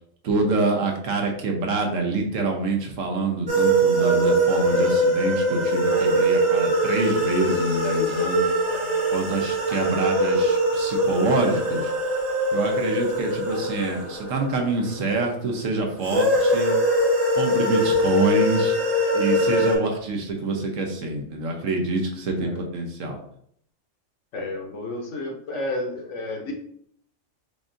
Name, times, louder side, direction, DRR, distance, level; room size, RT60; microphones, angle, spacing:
voice 1, 0.2-8.5 9.1-11.9 12.5-16.7 17.3-18.7 19.1-23.2, right 3 dB, 75° right, 2 dB, 1.1 m, -26 dB
sound 1, 3.5-15.2 16.0-19.7, equal, 30° right, 1.1 m, -22 dB
voice 2, 8.6-9.0 22.4-22.7 24.3-26.5, left 2 dB, 65° left, 1 dB, 1.1 m, -32 dB
5.2 x 2.4 x 2.6 m, 0.67 s
omnidirectional pair, 1.4 m